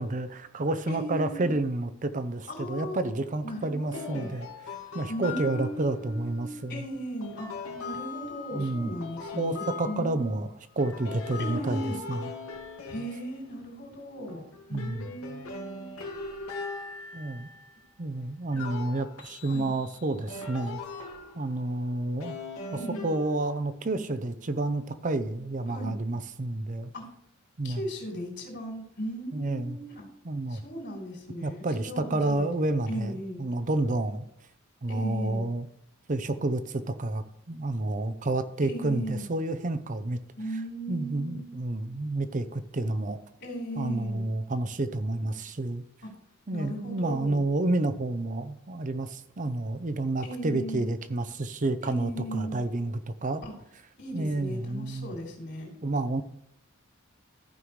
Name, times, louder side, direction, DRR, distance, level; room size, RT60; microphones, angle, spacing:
voice 1, 0.0-4.5 4.9-6.9 8.5-8.9 9.4-10.5 10.8-12.3 14.7-15.1 17.1-17.5 18.0-20.8 21.3-22.4 22.7-26.9 27.6-27.9 29.3-29.8 30.2-30.6 31.4-34.3 34.8-35.7 36.1-40.2 40.9-43.2 43.8-45.8 46.5-53.4 54.1-55.2 55.8-56.2, right 2 dB, 35° right, 11 dB, 0.6 m, -30 dB
voice 2, 0.9-1.5 2.5-3.1 3.4-4.3 5.1-7.5 7.8-10.3 11.4-12.0 12.9-15.9 19.5-19.7 22.7-23.1 25.7-26.0 26.9-27.0 27.6-30.0 30.5-32.5 32.9-33.4 34.9-35.4 38.6-39.3 40.4-41.5 43.4-44.2 46.5-47.4 50.2-50.9 51.8-52.6 53.4-53.5 54.0-55.7, equal, 55° left, -1 dB, 3.2 m, -37 dB
sound 1, 3.9-5.9 7.2-10.4 10.8-13.8 14.3-17.8 18.5-21.6 22.2-23.7, left 4 dB, 90° left, 1.9 m, -40 dB
14.5 x 5.5 x 3.1 m, 0.74 s
head